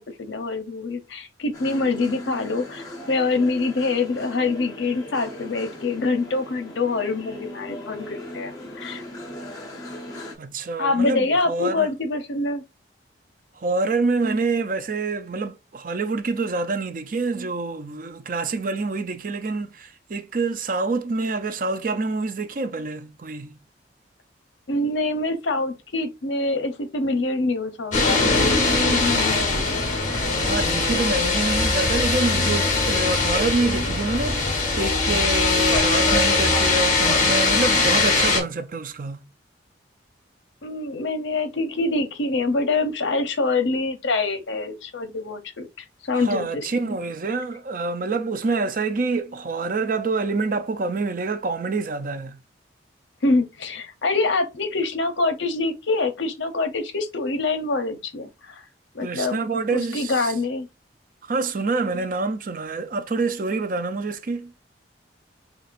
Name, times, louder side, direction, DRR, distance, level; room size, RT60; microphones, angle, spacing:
voice 1, 0.0-9.0 10.8-12.6 24.7-29.7 40.6-47.0 53.2-58.7 58.9-59.4 59.7-60.7, left 3 dB, 75° left, 0.8 m, -25 dB
sound 1, 1.5-10.3, left 1 dB, 20° left, 1.0 m, -38 dB
voice 2, 10.4-11.9 13.6-23.6 30.4-39.2 46.1-52.4 59.0-60.3 61.2-64.5, right 3 dB, 45° right, 0.4 m, -26 dB
sound 2, 27.9-38.4, left 3 dB, 40° left, 1.4 m, -21 dB
5.6 x 2.8 x 2.5 m
head